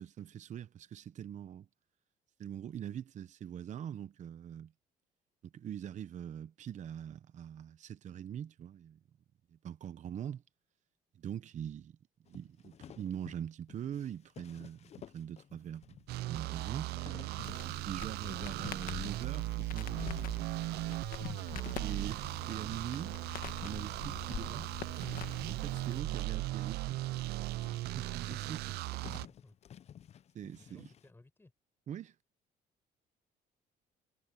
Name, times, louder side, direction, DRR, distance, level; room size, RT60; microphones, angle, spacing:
voice 1, 0.0-1.7 2.4-4.7 5.4-9.0 9.5-10.4 11.1-12.0 12.3-16.9 17.6-20.0 21.8-23.2 23.6-24.7 25.5-27.0 27.9-28.7 30.3-30.8 31.9-32.1, right 9 dB, 45° right, 0.8 m, -43 dB
sound 1, 12.3-31.1, left 9 dB, 40° left, 0.5 m, -53 dB
sound 2, 16.1-29.3, right 18 dB, 75° right, 0.4 m, -38 dB
Crackle, 17.4-26.0, left 10 dB, 55° left, 1.6 m, -46 dB
voice 2, 29.1-29.6 30.5-31.5, left 2 dB, 15° left, 5.6 m, -60 dB
cardioid pair, 110°, 17 cm